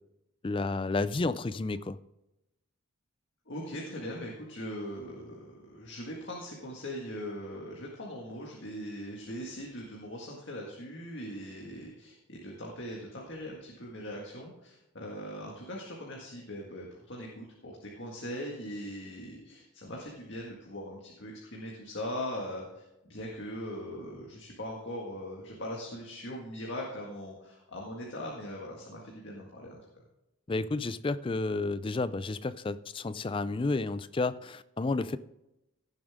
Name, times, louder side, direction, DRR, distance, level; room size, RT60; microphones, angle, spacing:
voice 1, 0.4-2.0 30.5-35.2, left 3 dB, 25° left, 15 dB, 0.3 m, -31 dB
voice 2, 3.5-29.8, equal, 50° left, -2 dB, 1.9 m, -40 dB
17.0 x 7.2 x 3.6 m, 0.91 s
head